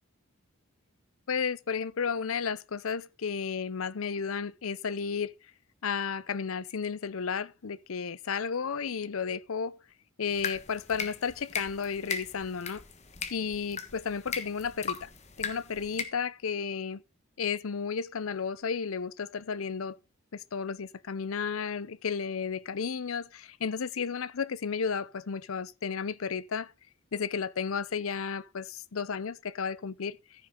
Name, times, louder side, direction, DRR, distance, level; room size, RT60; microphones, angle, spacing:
voice 1, 1.3-5.3 5.8-9.8 10.2-12.8 13.3-15.1 15.4-17.0 17.4-20.0 20.3-26.7 27.1-30.2, left 6 dB, 80° left, 0.6 m, -33 dB
sound 1, 10.3-16.0, left 5 dB, 30° left, 1.3 m, -38 dB
14.5 x 6.7 x 3.7 m
head